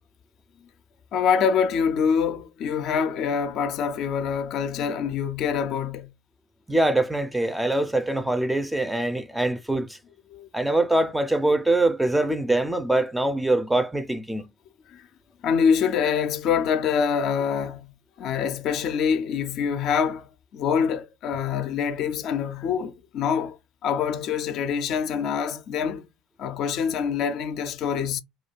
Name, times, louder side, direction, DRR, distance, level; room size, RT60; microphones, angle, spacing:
voice 1, 1.1-6.1 10.3-10.5 14.9-15.1 15.4-23.6 23.8-26.1 26.4-28.2, left 7 dB, 55° left, 0.4 m, -25 dB
voice 2, 6.7-10.0 10.5-14.4, right 2 dB, 5° right, 0.4 m, -23 dB
2.2 x 2.2 x 3.0 m
hypercardioid pair, 70°, 0 cm